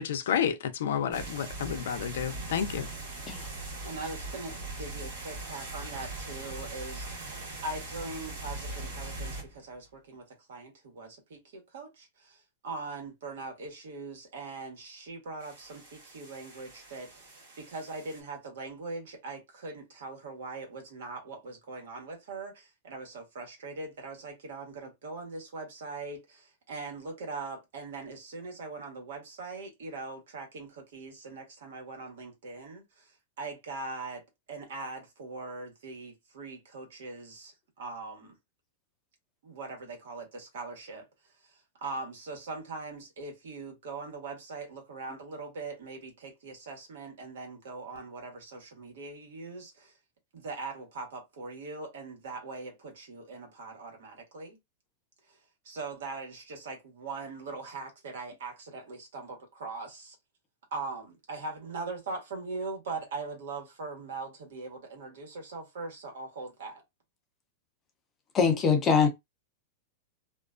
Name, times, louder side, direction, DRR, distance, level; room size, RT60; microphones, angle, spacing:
voice 1, 0.0-2.9, left 8 dB, 70° left, 0.5 m, -30 dB
sound 1, 1.1-9.6 15.4-18.2, right 2 dB, 50° right, 1.3 m, -41 dB
voice 2, 3.8-7.3 7.6-38.4 39.4-49.9 50.3-54.6 55.3-55.4 55.6-60.2 60.7-66.8, right 3 dB, 70° right, 1.2 m, -41 dB
voice 3, 68.3-69.1, left 6 dB, 15° left, 0.5 m, -22 dB
2.4 x 2.2 x 2.3 m
supercardioid pair, 175°, 0 cm